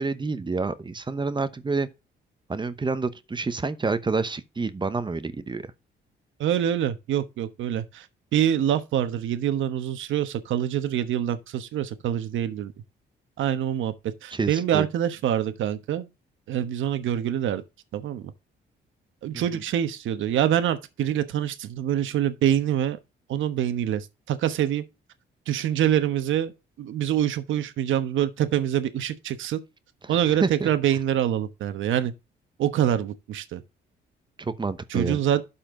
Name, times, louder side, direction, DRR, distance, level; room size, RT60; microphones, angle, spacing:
voice 1, 0.0-1.9 2.5-5.7 14.3-14.9 30.0-30.1 30.4-30.7 34.4-35.2, right 4 dB, 25° right, 0.9 m, -28 dB
voice 2, 6.4-8.1 8.3-12.7 13.4-13.9 14.2-16.1 16.5-17.6 17.9-18.2 19.2-23.0 23.3-24.8 25.5-26.5 26.8-29.6 30.1-32.1 32.6-33.6 34.9-35.4, right 10 dB, 75° right, 1.1 m, -25 dB
12.0 x 4.4 x 3.8 m
cardioid pair, 90°, 20 cm